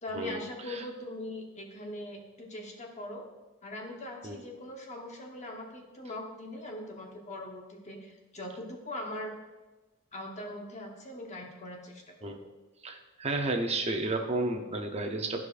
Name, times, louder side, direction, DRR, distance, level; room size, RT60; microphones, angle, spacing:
voice 1, 0.0-3.2 3.6-9.3 10.1-12.3, left 1 dB, 35° left, 0 dB, 1.1 m, -41 dB
voice 2, 12.8-15.4, right 2 dB, 30° right, 4 dB, 0.7 m, -32 dB
14.0 x 4.8 x 2.5 m, 1.2 s
head